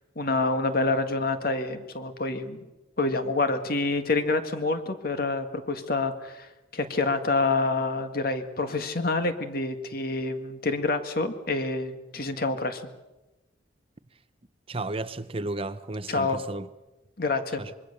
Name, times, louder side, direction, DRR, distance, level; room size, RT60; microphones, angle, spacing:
voice 1, 0.2-2.6 3.0-12.8 16.1-16.4 17.2-17.6, left 3 dB, 55° left, 1.9 m, -27 dB
voice 2, 14.7-16.7 17.6-17.7, right 2 dB, 30° right, 0.8 m, -33 dB
25.5 x 22.0 x 6.8 m
head